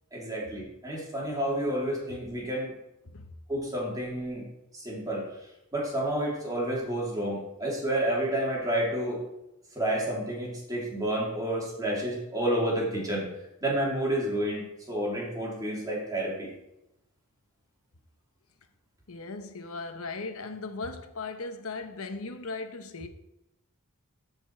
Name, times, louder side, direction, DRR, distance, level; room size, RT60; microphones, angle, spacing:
voice 1, 0.1-2.7 3.5-4.4 4.7-5.2 5.7-9.2 9.7-13.3 13.6-16.5, right 1 dB, 15° right, 2.9 m, -30 dB
voice 2, 19.1-23.1, left 3 dB, 80° left, 1.0 m, -37 dB
14.0 x 5.4 x 4.5 m
head